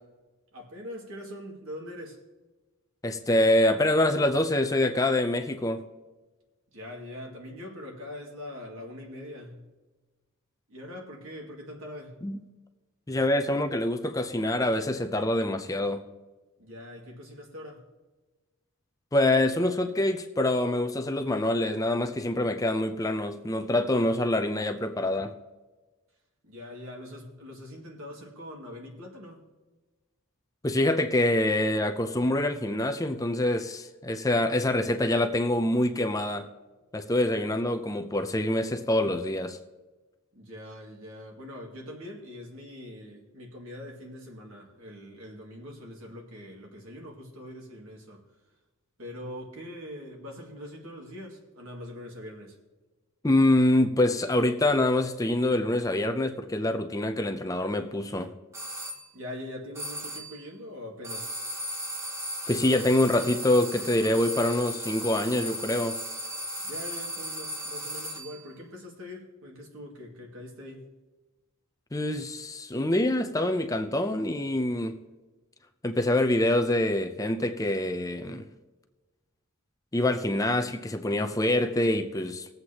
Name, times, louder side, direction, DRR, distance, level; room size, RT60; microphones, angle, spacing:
voice 1, 0.5-2.2 6.7-9.7 10.7-12.2 16.6-17.8 26.4-29.4 40.3-48.2 49.0-52.6 59.1-61.3 66.6-70.9, left 1 dB, 70° right, -1 dB, 2.1 m, -42 dB
voice 2, 3.0-5.9 12.2-12.4 13.1-16.0 19.1-25.3 30.6-36.5 36.9-39.6 53.2-58.3 62.5-66.0 71.9-75.0 75.8-78.5 79.9-82.5, left 1 dB, 15° left, 7 dB, 0.5 m, -25 dB
sound 1, 58.5-59.0 59.7-60.4 61.0-68.4, right 1 dB, 15° right, 1.0 m, -36 dB
20.0 x 8.0 x 2.9 m, 1.2 s
head